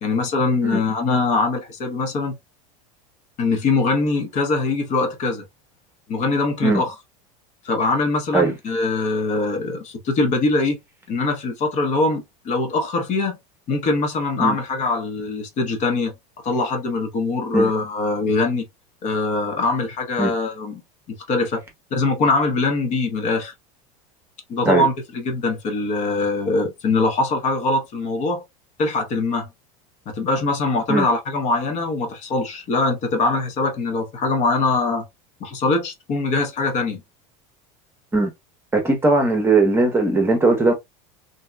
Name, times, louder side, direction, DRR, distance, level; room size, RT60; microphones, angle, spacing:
voice 1, 0.0-2.4 3.4-5.4 6.1-6.9 7.6-10.8 11.1-13.4 13.7-16.1 16.4-18.7 19.0-20.8 21.1-21.6 21.9-23.5 24.5-28.4 28.8-29.5 30.1-35.0 35.4-37.0, left 3 dB, 40° left, 0.9 m, -22 dB
voice 2, 38.7-40.7, right 3 dB, 10° right, 0.9 m, -18 dB
2.8 x 2.7 x 2.2 m
supercardioid pair, 125°, 18 cm